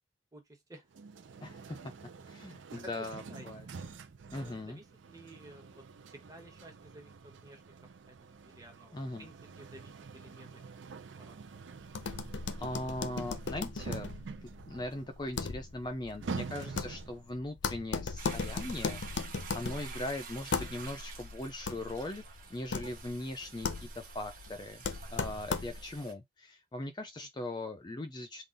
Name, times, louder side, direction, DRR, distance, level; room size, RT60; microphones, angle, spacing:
voice 1, 0.3-0.9 2.1-2.4 2.8-3.7 4.4-5.8 6.1-7.6 8.1-8.2 8.4-10.7 11.2-11.4 27.2-27.4, right 1 dB, 20° right, 1.0 m, -54 dB
sound 1, 0.9-17.3, right 4 dB, 80° right, 0.5 m, -47 dB
voice 2, 1.4-1.8 2.3-3.6 4.3-4.8 8.9-9.3 12.6-14.2 14.6-22.2 22.5-24.8 25.1-28.4, left 1 dB, 25° left, 0.4 m, -40 dB
sound 2, 11.9-26.0, left 4 dB, 75° left, 0.5 m, -38 dB
Toilet flush, 18.2-26.1, right 6 dB, 50° right, 1.0 m, -49 dB
3.8 x 2.3 x 3.8 m
head